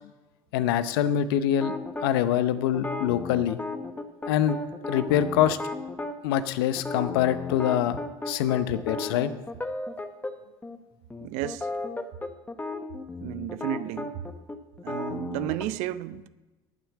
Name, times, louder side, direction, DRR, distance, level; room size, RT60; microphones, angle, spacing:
voice 1, 0.5-3.6 4.3-4.6 4.9-5.6 6.2-8.0 8.3-9.3, left 10 dB, 80° left, 0.8 m, -25 dB
sound 1, 1.6-2.1 2.7-6.2 6.8-10.3 10.6-10.8 11.1-15.6, left 2 dB, 15° left, 1.2 m, -34 dB
voice 2, 11.2-11.7 13.2-14.2 14.8-16.3, right 13 dB, 70° right, 0.7 m, -32 dB
10.5 x 9.2 x 7.3 m
hypercardioid pair, 80°, 12 cm